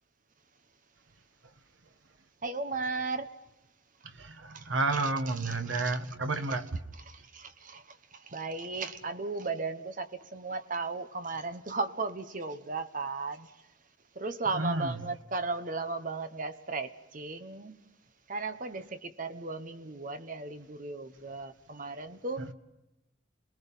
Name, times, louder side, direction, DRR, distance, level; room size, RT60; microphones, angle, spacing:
voice 1, 2.4-3.3 4.5-4.7 5.4-5.8 7.1-13.5 14.1-17.8 18.3-22.5, right 3 dB, 45° right, 1.1 m, -36 dB
voice 2, 4.0-6.8 14.5-15.1 22.4-22.5, right 3 dB, 80° right, 1.5 m, -31 dB
28.5 x 21.0 x 5.6 m
head